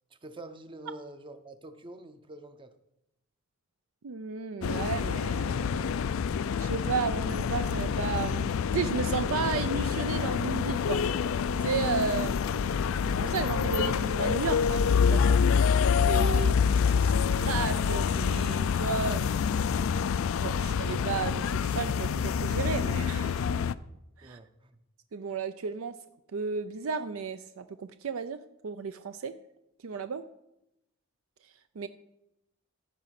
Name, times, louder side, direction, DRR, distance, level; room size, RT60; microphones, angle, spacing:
voice 1, 0.2-2.7 24.2-24.8, right 2 dB, 25° right, 8 dB, 0.6 m, -46 dB
voice 2, 4.0-6.0 6.6-11.0 11.6-12.4 13.1-15.5 16.1-16.5 16.8-19.3 20.4-23.4 24.2-24.4 25.1-25.9 26.3-28.4 28.6-29.3 29.8-30.2 31.8-31.9, right 5 dB, 80° right, 11 dB, 0.5 m, -33 dB
sound 1, 4.6-23.7, left 6 dB, 75° left, 0.4 m, -27 dB
14.5 x 5.0 x 5.8 m, 0.86 s
head